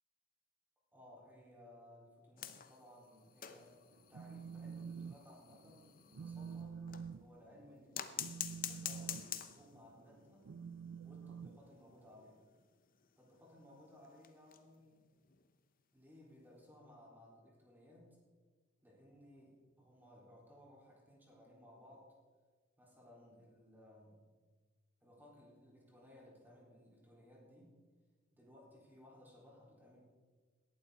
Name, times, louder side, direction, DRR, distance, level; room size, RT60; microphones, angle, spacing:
voice 1, 0.9-6.8 7.2-10.5 11.0-12.4 13.2-15.0 15.9-18.2 18.8-22.2 22.8-24.3 25.0-27.8 28.3-30.0, left 1 dB, 10° right, -4 dB, 4.3 m, -60 dB
sound 1, 2.4-7.2 7.9-9.8 10.2-10.3 10.6-10.7 11.0-11.1 11.7-14.8 15.2-15.5 16.7-16.8, left 10 dB, 45° left, 0.8 m, -48 dB
Telephone, 3.9-5.2 5.5-5.8 6.1-12.3, right 6 dB, 75° right, 0.4 m, -48 dB
17.0 x 12.0 x 4.0 m, 1.5 s
head